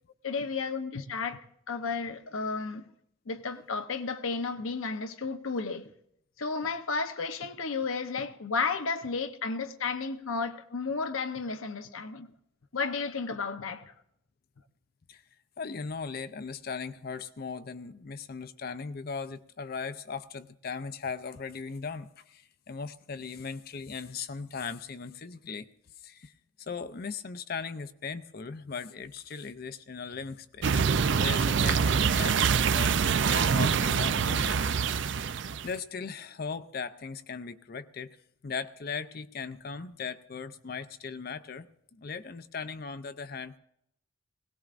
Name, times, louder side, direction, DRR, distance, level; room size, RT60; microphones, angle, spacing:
voice 1, 0.2-1.4 1.7-2.9 3.3-5.9 6.4-12.3 12.7-13.9, left 4 dB, 85° left, 0.8 m, -33 dB
voice 2, 15.6-25.7 26.0-26.3 26.6-30.8 31.2-35.3 35.6-38.2 38.4-41.7 41.9-43.6, left 5 dB, 50° left, 0.5 m, -38 dB
sound 1, 30.6-35.7, right 6 dB, 60° right, 0.4 m, -25 dB
20.5 x 17.5 x 2.5 m
head